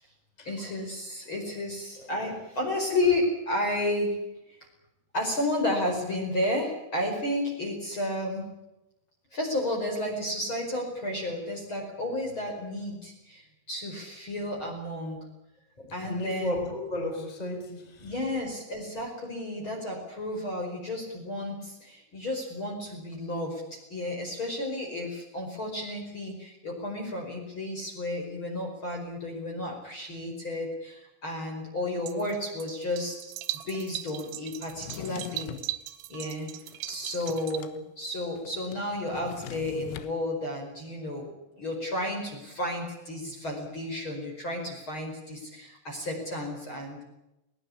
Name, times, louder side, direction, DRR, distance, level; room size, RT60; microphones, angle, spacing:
voice 1, 0.4-4.2 5.1-8.5 9.3-15.2 15.9-16.7 18.0-33.3 33.7-35.6 36.1-36.5 36.9-47.0, left 1 dB, 25° left, 0 dB, 5.2 m, -32 dB
voice 2, 15.8-18.1, left 1 dB, 10° left, 3 dB, 4.8 m, -34 dB
sound 1, 32.1-37.6, right 16 dB, 85° right, 3.6 m, -39 dB
Drawer open or close, 34.7-35.7 36.3-37.8 38.0-38.1 38.4-40.1, left 11 dB, 90° left, 4.1 m, -42 dB
21.0 x 20.0 x 8.6 m, 0.91 s
omnidirectional pair, 5.8 m